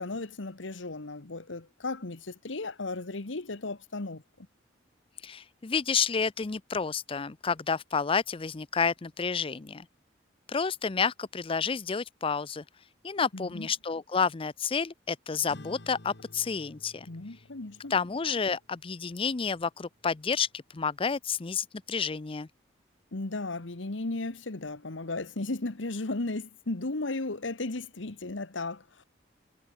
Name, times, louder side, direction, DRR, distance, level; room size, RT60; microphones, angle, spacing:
voice 1, 0.0-4.2 13.3-13.7 17.1-17.9 23.1-29.0, left 2 dB, 85° left, 1.4 m, -35 dB
voice 2, 5.2-9.8 10.5-12.6 13.0-17.1 17.9-20.5 20.7-22.5, left 5 dB, 30° left, 0.5 m, -30 dB
sound 1, 15.5-20.3, left 1 dB, 65° left, 2.1 m, -53 dB
head